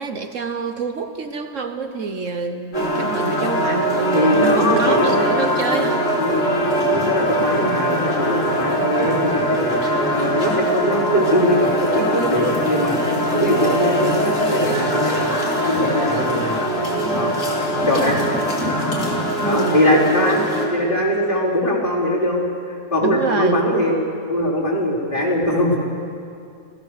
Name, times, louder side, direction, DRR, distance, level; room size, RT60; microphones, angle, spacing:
voice 1, 0.0-6.1 17.0-17.4 19.4-19.8 23.0-23.6, right 4 dB, 60° right, 6 dB, 1.4 m, -27 dB
sound 1, 2.7-20.7, equal, 55° left, 3.4 m, -21 dB
voice 2, 4.1-5.3 5.9-6.3 6.9-15.4 15.7-16.6 17.1-17.3 17.9-18.2 19.4-20.4 20.7-22.5 22.9-24.0 24.3-25.8, equal, 35° left, -5 dB, 4.5 m, -21 dB
29.5 x 16.5 x 6.8 m, 2.4 s
omnidirectional pair, 1.5 m